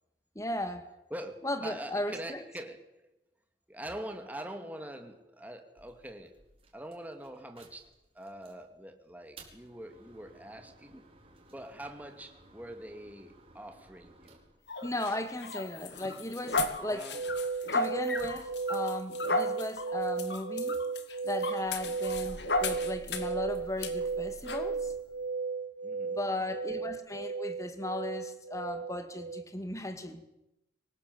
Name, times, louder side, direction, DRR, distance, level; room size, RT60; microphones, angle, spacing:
voice 1, 0.4-0.9 1.4-2.4 14.8-17.1 17.7-20.8 21.2-24.9 26.1-30.2, left 1 dB, 20° left, 2.3 m, -36 dB
voice 2, 1.1-3.1 3.7-6.4 6.7-11.0 11.5-14.4 16.8-17.2 25.8-26.2, right 1 dB, 10° right, 2.5 m, -44 dB
sound 1, 5.8-8.6 9.1-15.9 16.6-19.3 19.6-25.0, right 1 dB, 30° right, 4.7 m, -55 dB
sound 2, 14.7-23.4 23.8-23.9 24.5-24.7, left 3 dB, 70° left, 2.1 m, -35 dB
sound 3, 17.1-29.4, right 4 dB, 90° right, 1.0 m, -35 dB
24.5 x 19.0 x 8.1 m
head